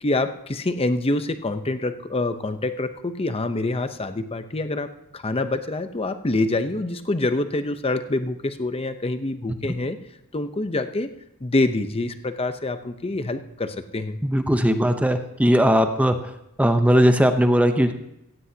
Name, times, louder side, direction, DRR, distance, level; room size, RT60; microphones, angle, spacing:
voice 1, 0.0-4.9 5.1-10.0 10.3-11.1 11.4-14.2, left 2 dB, 25° left, 9 dB, 0.7 m, -26 dB
voice 2, 14.2-16.2 16.6-17.9, equal, 5° right, 7 dB, 0.7 m, -18 dB
16.0 x 15.5 x 2.8 m, 0.86 s
head